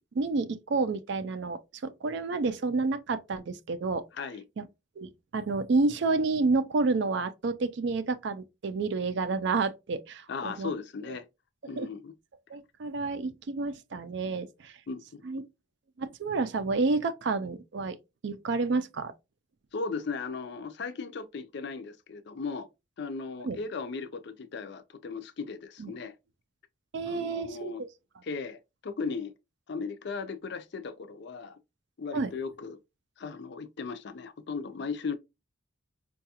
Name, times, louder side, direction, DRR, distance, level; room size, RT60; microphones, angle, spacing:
voice 1, 0.1-4.0 4.6-4.7 5.0-10.7 11.8-11.9 12.5-14.8 15.2-15.4 16.0-18.0 18.2-19.1 23.4-23.6 25.8-25.9 26.9-27.9 32.1-32.3, right 3 dB, 55° right, 0.4 m, -29 dB
voice 2, 4.1-4.4 10.3-11.3 11.7-12.1 14.9-15.2 19.7-22.7 23.0-26.1 27.0-27.8 28.2-29.3 29.7-31.6 32.0-32.8 33.2-35.2, left 4 dB, 55° left, 0.4 m, -37 dB
4.6 x 2.3 x 2.8 m
head